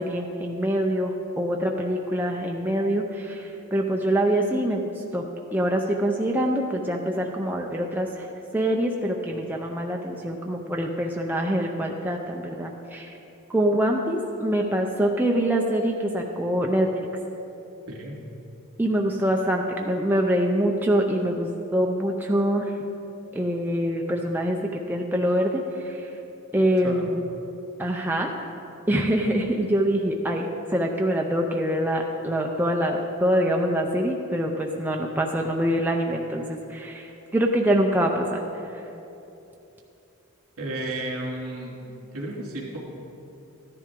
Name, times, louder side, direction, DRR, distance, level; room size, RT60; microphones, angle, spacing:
voice 1, 0.0-5.2 5.5-8.3 8.5-13.1 13.5-16.9 18.8-22.8 23.3-26.1 26.5-27.2 27.8-28.3 28.9-38.4 38.7-38.8, right 1 dB, 10° right, 0 dB, 0.5 m, -25 dB
voice 2, 17.9-18.2 26.8-27.1 40.6-42.8, right 1 dB, 75° right, -3 dB, 2.7 m, -33 dB
13.5 x 10.5 x 3.7 m, 2.8 s
head